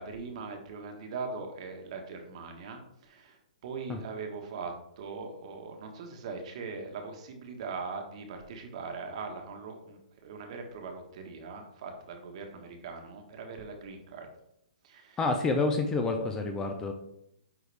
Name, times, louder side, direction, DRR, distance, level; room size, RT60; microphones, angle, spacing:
voice 1, 0.0-14.3 14.8-15.2, right 4 dB, 50° right, 4 dB, 1.4 m, -41 dB
voice 2, 15.2-16.9, left 3 dB, 15° left, 4 dB, 0.7 m, -28 dB
9.3 x 4.0 x 3.4 m, 0.78 s
hypercardioid pair, 145°, 4 cm